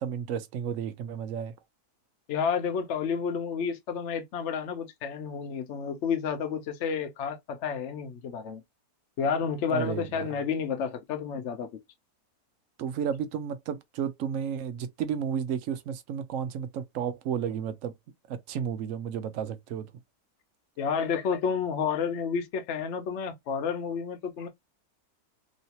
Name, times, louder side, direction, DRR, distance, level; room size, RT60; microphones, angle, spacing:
voice 1, 0.0-1.5 9.7-10.4 12.8-17.9 18.3-19.9, right 8 dB, 65° right, 0.9 m, -32 dB
voice 2, 2.3-8.6 9.2-11.7 20.8-24.5, left 6 dB, 55° left, 0.9 m, -30 dB
3.1 x 2.7 x 2.8 m
omnidirectional pair, 1.6 m